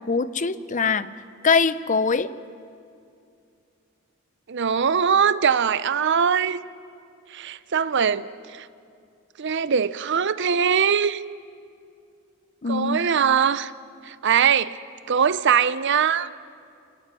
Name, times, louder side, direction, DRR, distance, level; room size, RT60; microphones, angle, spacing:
voice 1, 0.1-1.1 1.4-2.3 12.6-13.2, left 5 dB, 40° left, 14 dB, 0.6 m, -23 dB
voice 2, 4.5-6.6 7.3-8.2 8.5-8.7 9.4-11.2 12.7-13.7 14.1-14.8 15.1-16.3, right 7 dB, 60° right, 16 dB, 0.6 m, -21 dB
27.5 x 19.0 x 6.2 m, 2.5 s
head